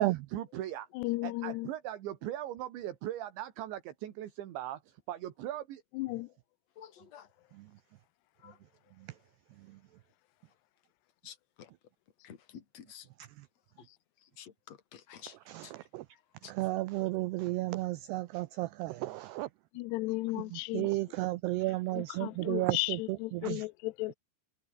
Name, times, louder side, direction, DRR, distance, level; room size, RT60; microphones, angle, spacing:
voice 1, 0.3-0.9 1.2-4.8 5.1-5.8, right 12 dB, 70° right, 4.1 m, -39 dB
voice 2, 1.0-1.7 6.0-6.3 19.8-20.9 21.9-24.2, left 22 dB, 85° left, 2.4 m, -35 dB
voice 3, 6.8-7.3 8.4-8.5 11.2-11.7 12.2-13.1 14.4-15.3 15.6-15.7 16.4-16.5, left 9 dB, 40° left, 3.2 m, -50 dB
voice 4, 15.5-16.0 16.5-19.5 20.4-23.0 23.3-23.7, right 18 dB, 90° right, 2.3 m, -32 dB
open air
omnidirectional pair, 5.6 m